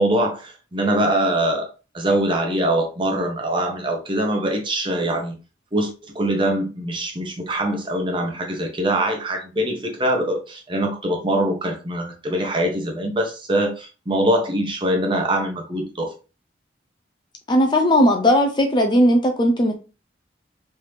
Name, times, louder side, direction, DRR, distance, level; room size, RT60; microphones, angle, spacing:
voice 1, 0.0-1.7 1.9-5.3 5.7-16.1, right 1 dB, 25° right, 0.8 m, -23 dB
voice 2, 17.5-19.8, equal, 25° left, 0.5 m, -17 dB
3.3 x 2.7 x 3.2 m
head